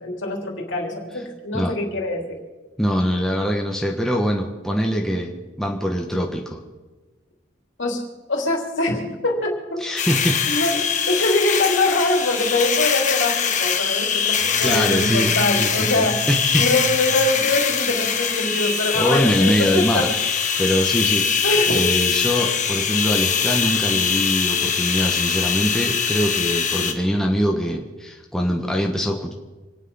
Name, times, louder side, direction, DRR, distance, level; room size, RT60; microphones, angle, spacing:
voice 1, 0.0-2.4 7.8-8.0 8.3-9.8 10.5-16.2 16.6-20.1 21.4-21.9, left 2 dB, 65° left, 0 dB, 3.5 m, -23 dB
voice 2, 2.8-6.6 9.8-10.4 14.4-15.3 15.6-16.7 18.9-20.3 20.6-21.4 21.7-29.3, equal, ahead, 0 dB, 1.3 m, -23 dB
sound 1, 10.0-26.9, left 7 dB, 35° left, 1.3 m, -22 dB
sound 2, 14.4-18.5, right 4 dB, 45° right, 0.6 m, -34 dB
26.5 x 9.5 x 5.6 m, 1.2 s
head